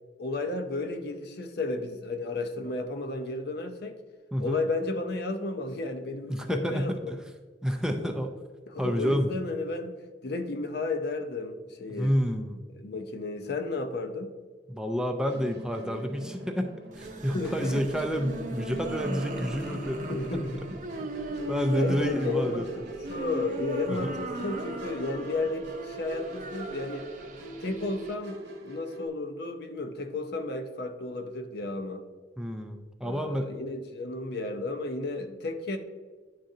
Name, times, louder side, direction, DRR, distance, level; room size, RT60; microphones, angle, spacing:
voice 1, 0.2-4.0 4.4-7.2 7.9-8.1 8.7-10.0 10.2-12.1 12.7-14.3 17.3-17.9 20.1-20.6 21.7-22.8 23.1-27.1 27.6-32.1 33.0-35.8, left 2 dB, 60° left, 0.6 m, -33 dB
voice 2, 6.3-7.2 7.6-8.3 8.8-9.4 11.9-12.6 14.7-16.7 16.9-20.2 21.5-22.7 23.9-24.1 32.4-33.5, equal, 5° right, 0.4 m, -29 dB
Musical instrument, 15.3-29.1, right 2 dB, 65° right, 0.9 m, -43 dB
sound 1, 16.9-28.1, right 1 dB, 45° right, 0.7 m, -38 dB
10.0 x 3.8 x 2.7 m
head